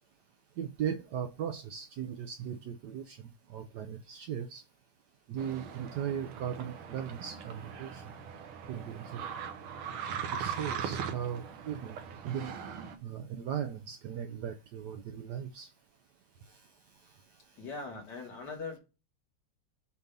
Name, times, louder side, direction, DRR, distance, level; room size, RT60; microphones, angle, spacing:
voice 1, 0.6-4.6 5.3-8.1 8.7-9.2 10.3-12.0 12.2-12.5 13.0-15.7 16.5-16.6, right 8 dB, 70° right, 1.0 m, -38 dB
sound 1, 5.4-13.0, right 7 dB, 90° right, 1.7 m, -40 dB
voice 2, 17.6-18.8, left 4 dB, 55° left, 2.2 m, -41 dB
6.9 x 2.7 x 5.3 m
omnidirectional pair, 2.3 m